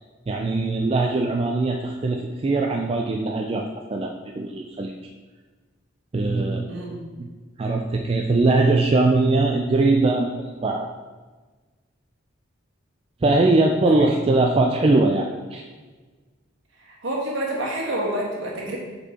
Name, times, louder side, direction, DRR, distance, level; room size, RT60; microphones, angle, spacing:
voice 1, 0.3-3.6 3.9-4.9 6.1-6.7 7.2-7.3 7.6-10.9 13.2-15.6, right 2 dB, 25° right, 1 dB, 0.3 m, -21 dB
voice 2, 6.7-7.1 13.8-13.9 16.9-18.8, right 1 dB, 65° right, -3 dB, 1.5 m, -28 dB
5.4 x 4.4 x 4.2 m, 1.3 s
head